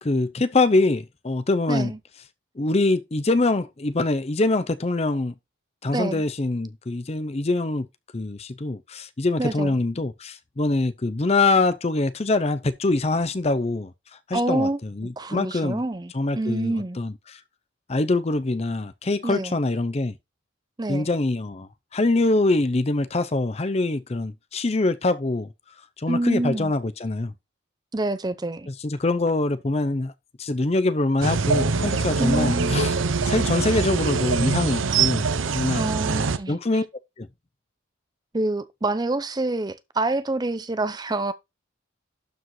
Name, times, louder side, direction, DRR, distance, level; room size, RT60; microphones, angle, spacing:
voice 1, 0.0-1.9 2.6-5.3 5.8-7.9 8.1-13.9 14.3-15.8 16.1-17.4 17.9-20.1 20.9-25.5 26.0-27.3 28.7-30.1 30.4-32.9 33.2-35.3 35.5-35.9 36.5-36.9 37.2-37.3, left 2 dB, 30° left, 0.6 m, -24 dB
voice 2, 1.7-2.0 5.9-6.2 9.4-9.7 14.3-14.8 15.2-17.0 19.2-19.6 20.8-21.1 26.1-26.7 27.9-28.7 32.2-32.9 35.7-36.8 38.3-41.3, right 2 dB, 20° right, 0.5 m, -27 dB
sound 1, 31.2-36.4, right 4 dB, 75° right, 0.7 m, -23 dB
12.0 x 4.9 x 3.1 m
head